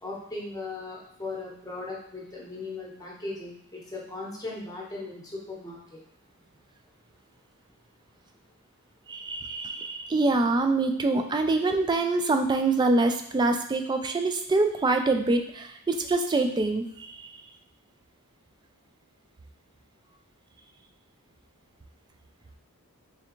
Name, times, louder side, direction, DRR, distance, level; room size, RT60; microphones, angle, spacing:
voice 1, 0.0-6.0, left 2 dB, 15° left, -3 dB, 0.9 m, -38 dB
voice 2, 9.1-17.3, right 3 dB, 20° right, 5 dB, 0.3 m, -25 dB
3.5 x 3.3 x 3.0 m, 0.72 s
head